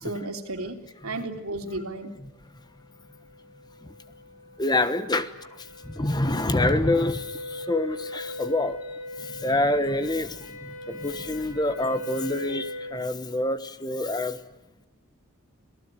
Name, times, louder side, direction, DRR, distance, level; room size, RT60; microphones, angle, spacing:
voice 1, 0.0-2.1, right 2 dB, 85° right, 5 dB, 3.2 m, -33 dB
sound 1, 3.1-13.0, left 1 dB, 35° left, 5.4 m, -40 dB
voice 2, 4.6-5.3 5.8-8.8 9.2-14.4, left 1 dB, 20° left, 12 dB, 1.1 m, -26 dB
27.0 x 18.5 x 9.1 m, 1.0 s
head